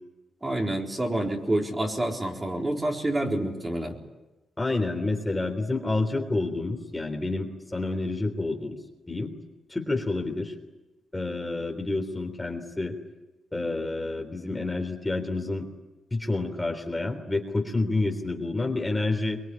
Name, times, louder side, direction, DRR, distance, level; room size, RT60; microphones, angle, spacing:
voice 1, 0.4-4.0, right 1 dB, 20° right, 0 dB, 4.2 m, -28 dB
voice 2, 4.6-8.7 9.1-9.3 9.7-10.5 11.1-12.9 13.5-15.7 16.1-19.4, left 2 dB, 15° left, 4 dB, 3.5 m, -29 dB
24.5 x 21.5 x 9.8 m, 1.1 s
cardioid pair, 80°, 0 cm